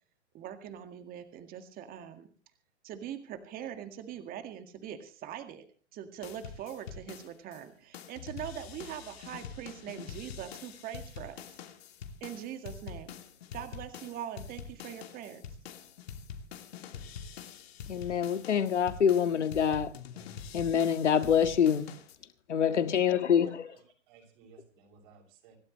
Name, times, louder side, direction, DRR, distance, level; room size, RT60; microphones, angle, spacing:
voice 1, 0.3-2.3 2.8-5.6 5.9-11.6 12.2-13.2 13.5-15.4, right 10 dB, 25° right, 1.9 m, -42 dB
sound 1, 6.2-7.6 7.9-22.1, left 7 dB, 60° left, 2.8 m, -45 dB
voice 2, 17.9-19.9 20.5-21.9 22.5-23.7, left 8 dB, 80° left, 1.7 m, -26 dB
voice 3, 23.3-25.6, right 6 dB, 45° right, 6.6 m, -58 dB
26.5 x 12.5 x 3.2 m
hypercardioid pair, 125°, 35 cm